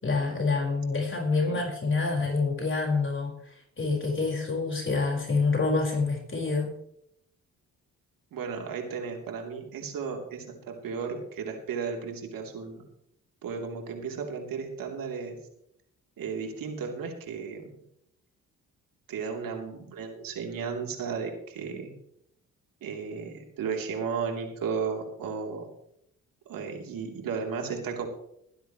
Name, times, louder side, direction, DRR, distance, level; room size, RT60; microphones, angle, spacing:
voice 1, 0.0-3.3 3.8-6.7, left 3 dB, 35° left, -1 dB, 4.9 m, -27 dB
voice 2, 8.3-12.8 13.4-15.4 16.2-17.7 19.1-21.9 22.8-25.7 26.5-28.1, right 5 dB, 70° right, 2 dB, 3.3 m, -34 dB
21.5 x 10.0 x 3.1 m, 0.73 s
supercardioid pair, 50°, 35 cm